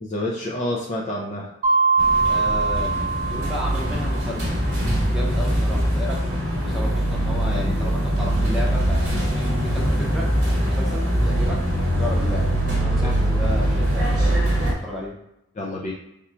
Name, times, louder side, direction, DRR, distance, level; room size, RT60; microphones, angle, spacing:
voice 1, 0.0-1.5 13.0-13.1 15.6-15.9, left 1 dB, 35° left, -2 dB, 0.4 m, -28 dB
Mallet percussion, 1.6-4.2, right 4 dB, 35° right, 0.6 m, -22 dB
sound 1, 2.0-14.7, equal, 50° right, 1.1 m, -22 dB
voice 2, 2.3-2.9 3.2-4.6 5.1-12.5 12.8-15.1, left 1 dB, ahead, -5 dB, 0.8 m, -33 dB
3.6 x 2.3 x 4.3 m, 0.83 s
head